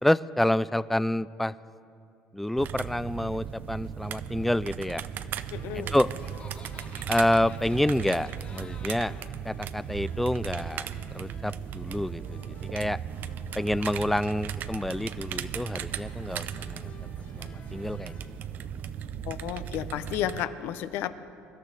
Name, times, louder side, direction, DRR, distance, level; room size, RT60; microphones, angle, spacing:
voice 1, 0.0-1.5 2.3-5.0 5.7-6.1 7.1-9.1 9.4-10.9 11.1-12.4 12.7-13.0 13.6-16.9 17.4-18.1, left 1 dB, 5° left, 17 dB, 0.3 m, -28 dB
sound 1, 2.6-20.5, right 8 dB, 55° right, 0.6 m, -37 dB
voice 2, 5.5-5.9 19.2-21.1, left 11 dB, 70° left, 13 dB, 0.7 m, -32 dB
sound 2, 5.6-18.3, left 4 dB, 55° left, 2.8 m, -53 dB
Laughter, 5.8-9.4, left 4 dB, 25° left, 1.2 m, -53 dB
24.0 x 12.0 x 4.1 m, 2.6 s
supercardioid pair, 100°, 4 cm